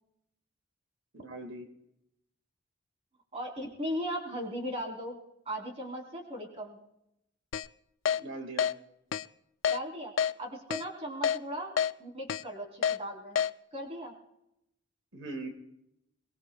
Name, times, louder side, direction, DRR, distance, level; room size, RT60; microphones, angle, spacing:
voice 1, 1.1-1.7 8.1-8.7 15.1-15.5, right 2 dB, 85° right, 5 dB, 1.9 m, -40 dB
voice 2, 3.3-5.2 5.5-6.8 9.7-13.4 13.7-14.1, equal, 35° right, 1 dB, 3.5 m, -38 dB
Keyboard (musical), 7.5-7.7 8.1-8.2 8.6-8.7 9.1-9.2 9.6-9.8 10.2-10.3 10.7-10.8 11.2-11.4 11.8-11.9 12.3-12.4 12.8-13.0 13.4-13.5, left 8 dB, 85° left, 0.4 m, -27 dB
23.5 x 20.5 x 2.3 m, 0.81 s
head